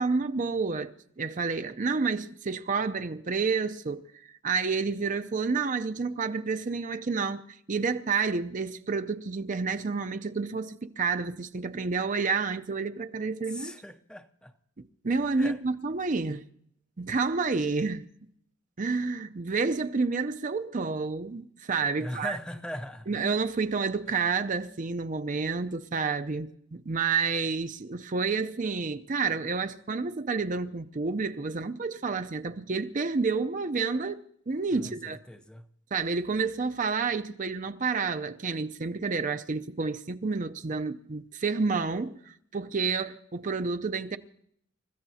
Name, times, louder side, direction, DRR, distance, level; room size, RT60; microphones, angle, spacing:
voice 1, 0.0-4.1 4.4-7.4 7.7-13.7 15.0-16.4 17.0-18.1 18.8-22.4 23.1-34.2 34.5-35.2 35.9-44.2, right 4 dB, 40° right, 0.6 m, -29 dB
voice 2, 13.5-14.5 15.4-15.6 22.0-23.1 34.7-35.7, equal, 5° left, 0.6 m, -40 dB
29.5 x 14.5 x 2.8 m
head